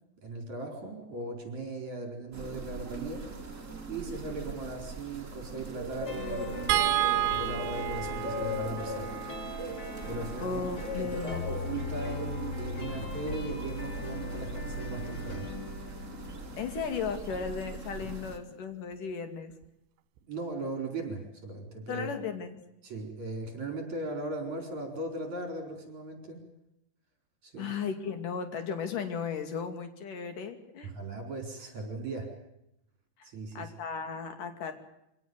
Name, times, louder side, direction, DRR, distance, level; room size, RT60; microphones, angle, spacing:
voice 1, 0.2-3.3 3.9-9.1 9.4-9.8 10.1-10.6 11.0-15.5 20.2-22.1 22.8-26.4 27.4-27.7 30.8-32.3 33.2-33.7, right 2 dB, 40° right, 3 dB, 5.5 m, -38 dB
sound 1, 2.3-18.4, right 1 dB, 20° right, 2.3 m, -41 dB
Inspiration Pop music, 6.1-17.1, left 3 dB, 30° left, 3.1 m, -40 dB
sound 2, 6.7-13.0 14.5-14.7 15.1-15.2, right 11 dB, 75° right, 3.3 m, -33 dB
voice 2, 10.4-11.4 16.6-19.5 21.9-22.6 27.6-30.9 33.6-34.7, left 6 dB, 50° left, 7 dB, 3.7 m, -35 dB
25.5 x 17.5 x 9.6 m, 0.82 s
omnidirectional pair, 5.3 m